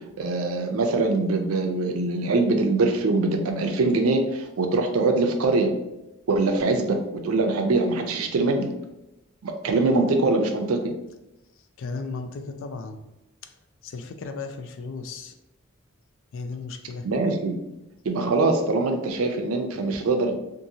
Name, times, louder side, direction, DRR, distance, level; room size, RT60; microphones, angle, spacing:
voice 1, 0.2-5.7 6.3-8.7 9.4-10.8 17.0-17.6 18.0-20.4, right 3 dB, 80° right, 5 dB, 0.4 m, -23 dB
voice 2, 11.8-13.0 13.8-15.4 16.3-17.1, left 4 dB, 65° left, 8 dB, 0.3 m, -35 dB
2.7 x 2.5 x 2.7 m, 0.94 s
head